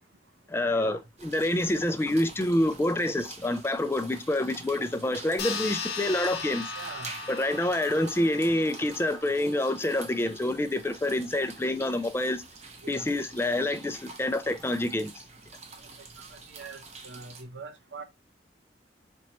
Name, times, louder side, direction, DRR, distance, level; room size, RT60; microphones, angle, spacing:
voice 1, 0.5-6.7 7.3-12.4 12.9-15.1, left 1 dB, 15° left, 0.3 m, -27 dB
sound 1, 1.2-17.4, right 4 dB, 35° right, 0.7 m, -48 dB
sound 2, 5.4-10.3, left 4 dB, 60° left, 0.9 m, -37 dB
voice 2, 6.8-7.1 12.8-13.1 16.2-18.0, right 4 dB, 80° right, 0.7 m, -43 dB
4.4 x 2.9 x 2.9 m
head